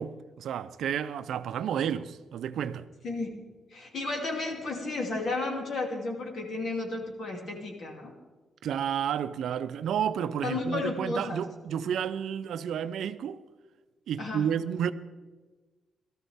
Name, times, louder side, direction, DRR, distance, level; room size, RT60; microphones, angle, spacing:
voice 1, 0.0-2.9 8.6-13.4 14.1-14.9, right 8 dB, 70° right, 0.5 m, -31 dB
voice 2, 3.7-8.1 10.4-11.4 14.2-14.5, left 3 dB, 50° left, 2.6 m, -33 dB
17.5 x 13.5 x 3.5 m
cardioid pair, 145°, 0 cm